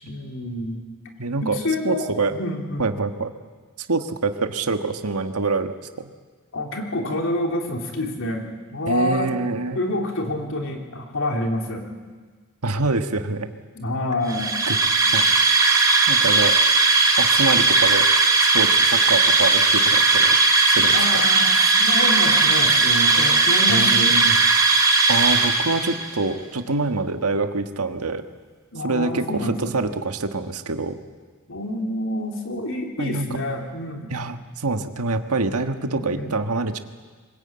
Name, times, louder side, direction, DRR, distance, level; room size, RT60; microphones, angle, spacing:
voice 1, 0.0-0.9 1.4-2.9 6.5-9.3 9.7-11.8 13.7-14.6 20.9-24.2 28.7-29.7 31.5-34.2 35.8-36.3, left 1 dB, 60° left, 2 dB, 3.3 m, -28 dB
voice 2, 1.2-1.6 1.8-2.3 2.8-3.3 3.8-6.1 8.9-9.8 12.6-13.5 14.7-14.8 15.1-15.2 16.1-16.6 17.2-18.0 18.5-20.4 20.6-21.0 23.7-24.3 25.1-28.2 28.8-31.0 33.0-33.3 34.1-36.8, right 3 dB, 80° right, 7 dB, 1.5 m, -25 dB
sound 1, 14.3-26.1, right 3 dB, 15° right, 3.1 m, -18 dB
23.0 x 20.5 x 8.8 m, 1.5 s
head